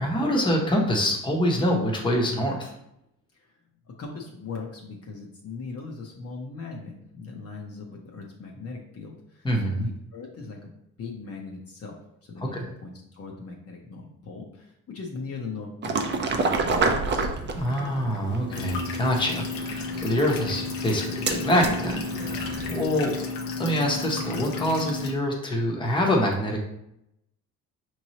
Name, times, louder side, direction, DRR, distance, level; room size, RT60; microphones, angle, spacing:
voice 1, 0.0-2.7 9.4-9.9 12.5-12.6 17.6-23.1 23.6-26.6, equal, 15° left, 0 dB, 0.9 m, -25 dB
voice 2, 3.9-9.5 9.7-10.7 11.0-12.0 12.3-17.3, left 4 dB, 45° left, -1 dB, 0.7 m, -39 dB
sound 1, 15.8-22.8, right 4 dB, 35° right, 0.5 m, -30 dB
sound 2, 18.5-25.1, left 4 dB, 85° left, 0.8 m, -33 dB
5.2 x 3.1 x 2.8 m, 0.80 s
cardioid pair, 110°, 34 cm